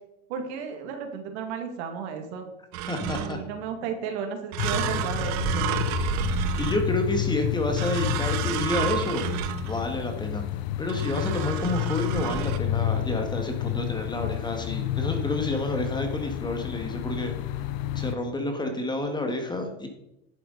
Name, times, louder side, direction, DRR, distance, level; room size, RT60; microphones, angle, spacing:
voice 1, 0.3-2.5 3.1-5.8, right 6 dB, 75° right, 5 dB, 2.2 m, -34 dB
sound 1, 2.7-3.6 4.5-7.2 7.8-10.0 10.9-12.6, right 11 dB, 55° right, 1.0 m, -31 dB
voice 2, 2.9-3.4 6.6-9.3 9.7-10.4 10.8-17.3 17.9-19.9, left 2 dB, 15° left, 5 dB, 1.7 m, -29 dB
sound 2, 4.6-18.2, left 13 dB, 65° left, 0.6 m, -30 dB
10.5 x 7.9 x 4.0 m, 0.85 s
supercardioid pair, 120°, 34 cm